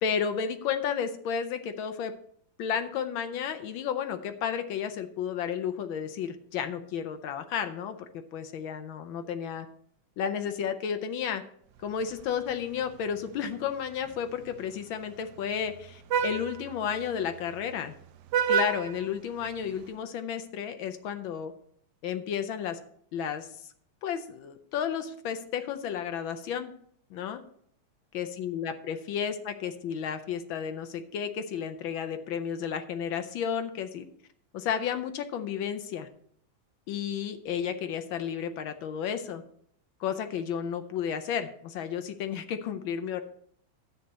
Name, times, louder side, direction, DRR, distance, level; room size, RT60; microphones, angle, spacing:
voice 1, 0.0-2.1 2.6-9.7 10.2-11.4 11.8-17.9 18.5-21.5 22.0-22.8 23.1-23.5 24.0-26.7 27.1-27.4 28.1-34.1 34.5-36.1 36.9-39.4 40.0-43.2, left 8 dB, 75° left, 9 dB, 1.5 m, -32 dB
Vehicle horn car horn honking, 11.8-19.9, right 8 dB, 70° right, 1.1 m, -34 dB
10.5 x 8.1 x 4.1 m, 0.65 s
omnidirectional pair, 2.2 m